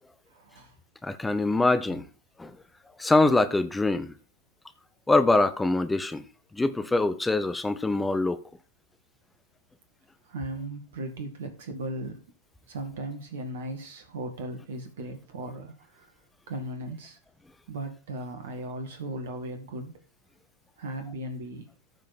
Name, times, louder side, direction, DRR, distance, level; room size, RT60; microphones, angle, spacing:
voice 1, 0.3-0.7 1.9-2.0 10.3-12.2 12.7-16.1 16.5-17.2 17.7-19.9 20.8-21.7, right 1 dB, 60° right, 2.0 m, -37 dB
voice 2, 1.0-2.1 2.4-2.5 3.0-4.1 5.1-6.2 6.5-8.4, left 2 dB, 10° left, 0.9 m, -24 dB
14.5 x 5.3 x 4.4 m
figure-of-eight pair, 90°, 0 cm